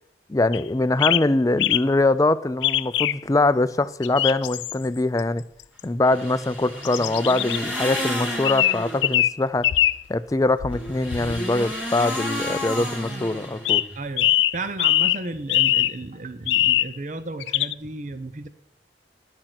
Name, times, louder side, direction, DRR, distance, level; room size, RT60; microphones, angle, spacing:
voice 1, 0.3-5.4 5.8-9.7 10.1-13.8, left 2 dB, 20° left, 0.4 m, -23 dB
sound 1, 0.5-0.6 1.0-1.2 1.6-1.8 2.6-3.2 4.0-4.7 5.2-5.3 5.8-5.9 6.8-7.6 8.4-9.3 9.6-10.0 10.6-11.4 13.6-13.9 14.2-15.2 15.5-15.9 16.5-16.9 17.4-17.7, left 13 dB, 85° left, 0.4 m, -22 dB
sound 2, 6.0-9.2 10.6-14.0, left 1 dB, 10° right, 1.8 m, -31 dB
voice 2, 12.8-13.5 14.0-18.5, right 2 dB, 45° right, 0.6 m, -34 dB
11.5 x 6.5 x 6.0 m
head